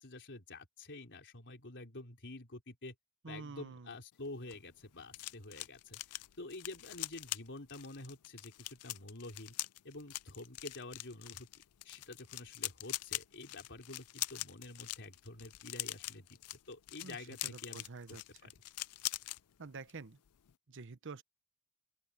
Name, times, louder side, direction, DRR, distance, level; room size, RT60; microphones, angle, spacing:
voice 1, 0.0-2.9 3.3-9.5 9.8-11.5 11.8-18.6, left 2 dB, 55° left, 4.0 m, -49 dB
voice 2, 3.2-3.9 17.0-17.2 17.4-18.5 19.6-20.2 20.7-21.2, right 4 dB, 55° right, 1.0 m, -48 dB
sound 1, 4.2-19.4 19.7-20.0 20.3-20.5, left 18 dB, 80° left, 0.5 m, -43 dB
open air
head